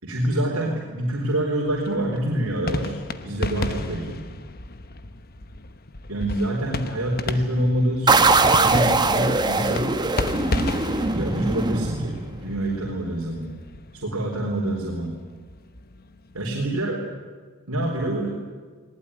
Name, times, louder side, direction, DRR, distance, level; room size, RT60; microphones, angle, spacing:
voice 1, 0.0-2.9 3.2-4.2 6.1-9.9 10.8-13.5 13.9-15.2 16.3-17.0 17.7-18.4, right 1 dB, 70° right, -2 dB, 4.1 m, -26 dB
sound 1, 1.7-16.8, left 2 dB, 45° left, 1.1 m, -34 dB
sound 2, 8.1-12.6, right 3 dB, 20° right, 1.2 m, -21 dB
20.5 x 19.5 x 10.0 m, 1.5 s
head